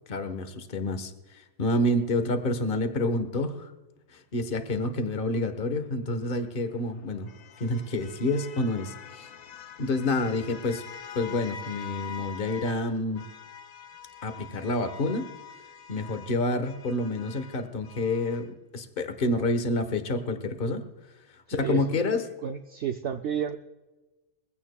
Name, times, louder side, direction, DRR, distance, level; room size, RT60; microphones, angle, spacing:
voice 1, 0.1-3.7 4.1-7.3 7.6-9.3 9.8-10.8 11.1-13.3 14.2-15.3 15.9-20.8 21.5-22.2, left 2 dB, 35° left, 8 dB, 1.3 m, -28 dB
sound 1, 6.2-12.8 13.1-18.5, left 7 dB, 65° left, 1.2 m, -45 dB
voice 2, 21.5-22.1 22.4-23.6, right 8 dB, 65° right, 5 dB, 0.7 m, -31 dB
22.5 x 16.0 x 2.3 m, 1.2 s
omnidirectional pair, 1.9 m